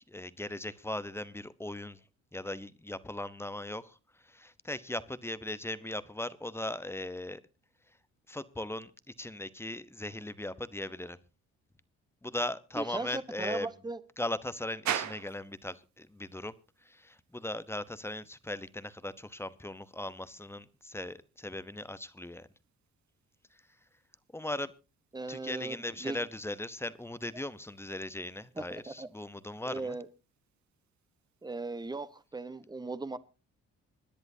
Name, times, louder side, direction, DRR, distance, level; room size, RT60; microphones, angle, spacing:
voice 1, 0.1-2.0 2.3-7.4 8.3-11.2 12.2-13.7 14.2-16.5 16.8-22.5 23.5-23.6 24.3-24.7 25.3-30.0, left 1 dB, 10° left, 0.8 m, -38 dB
voice 2, 12.8-14.0 25.1-25.8 26.0-26.2 28.6-29.1 29.7-30.1 31.4-33.2, right 3 dB, 15° right, 1.0 m, -38 dB
sound 1, 14.9-32.3, right 10 dB, 70° right, 1.1 m, -47 dB
25.5 x 10.5 x 2.7 m
cardioid pair, 90°, 30 cm